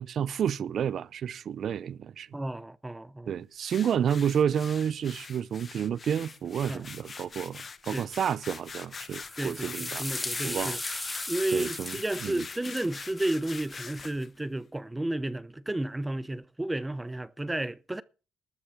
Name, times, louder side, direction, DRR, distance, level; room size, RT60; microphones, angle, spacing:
voice 1, 0.0-2.3 3.3-10.1 10.4-10.8 11.5-12.5, right 8 dB, 60° right, 0.6 m, -30 dB
voice 2, 2.3-3.3 6.7-6.8 7.9-8.1 9.4-9.7 10.0-10.8 11.3-18.0, right 1 dB, 10° right, 0.7 m, -32 dB
sound 1, 3.6-14.3, left 5 dB, 40° left, 1.1 m, -43 dB
sound 2, 9.1-14.0, left 2 dB, 15° left, 2.6 m, -38 dB
13.0 x 7.0 x 8.1 m
cardioid pair, 90°, 0 cm